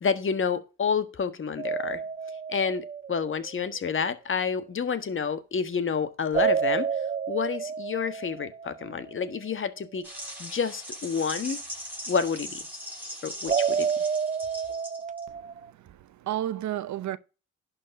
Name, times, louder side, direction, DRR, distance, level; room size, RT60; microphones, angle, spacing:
voice 1, 0.0-2.0 2.5-6.9 7.3-10.1 10.4-11.6 12.1-12.6 13.2-13.9, left 6 dB, 40° left, 1.4 m, -29 dB
sound 1, 1.6-3.7 6.3-9.2 13.5-15.7, right 6 dB, 25° right, 0.5 m, -29 dB
sound 2, 10.0-15.2, equal, 5° right, 5.0 m, -39 dB
voice 2, 15.3-17.2, right 12 dB, 65° right, 0.8 m, -33 dB
11.0 x 4.4 x 5.4 m
cardioid pair, 85°, 32 cm